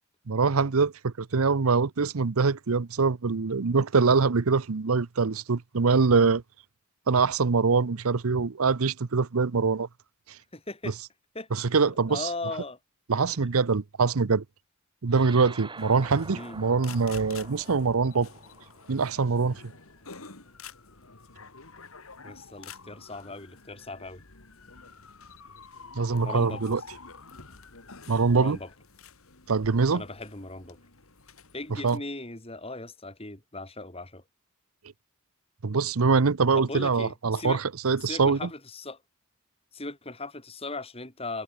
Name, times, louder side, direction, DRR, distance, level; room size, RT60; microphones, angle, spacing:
voice 1, 0.3-6.4 7.1-9.9 11.5-12.3 13.1-14.4 15.0-18.3 18.9-19.6 26.0-26.8 28.1-28.6 29.5-30.0 31.8-32.0 35.6-38.4, right 4 dB, 75° right, 0.7 m, -24 dB
voice 2, 10.5-11.0 11.3-11.5 12.1-12.8 13.4-13.5 16.3-16.6 22.2-24.2 26.2-26.8 28.3-28.7 29.9-30.8 31.5-34.2 36.5-37.6 38.0-39.0 39.7-41.4, left 2 dB, 25° left, 4.1 m, -38 dB
sound 1, 15.1-19.8, right 3 dB, 20° right, 2.7 m, -47 dB
sound 2, 15.8-32.0, left 4 dB, 70° left, 2.7 m, -48 dB
head